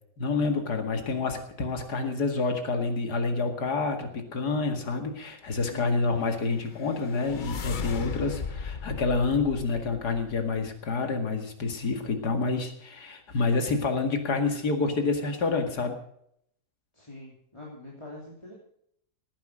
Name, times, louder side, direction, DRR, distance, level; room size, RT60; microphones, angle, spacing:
voice 1, 0.2-16.0, left 4 dB, 70° left, 5 dB, 2.6 m, -28 dB
voice 2, 5.7-6.0 16.9-18.5, left 1 dB, 15° left, -4 dB, 3.3 m, -45 dB
sound 1, 6.4-10.6, left 5 dB, 45° left, 0.7 m, -37 dB
18.0 x 10.0 x 5.1 m, 0.69 s
omnidirectional pair, 1.8 m